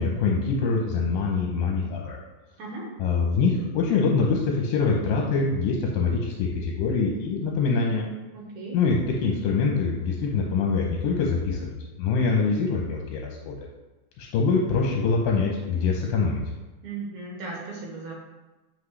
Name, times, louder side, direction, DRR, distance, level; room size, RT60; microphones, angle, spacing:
voice 1, 0.0-2.2 3.0-8.1 8.7-11.7 12.0-13.7 14.2-16.4, left 4 dB, 75° left, -1 dB, 2.4 m, -24 dB
voice 2, 2.6-2.9 8.3-8.8 16.8-18.1, right 3 dB, 65° right, -3 dB, 2.3 m, -36 dB
8.2 x 5.3 x 3.2 m, 1.1 s
omnidirectional pair, 4.4 m